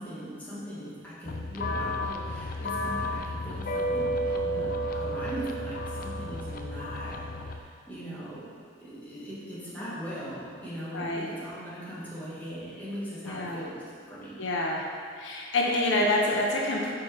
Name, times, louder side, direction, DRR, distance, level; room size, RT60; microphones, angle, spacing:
voice 1, 0.0-8.5 8.8-14.4, equal, 10° left, -10 dB, 1.5 m, -40 dB
sound 1, 1.2-7.6, equal, 50° left, 0.4 m, -32 dB
voice 2, 10.9-11.3 13.2-13.6 14.4-14.8 15.2-16.9, left 1 dB, 75° left, -2 dB, 0.7 m, -27 dB
4.8 x 4.6 x 4.4 m, 2.1 s
head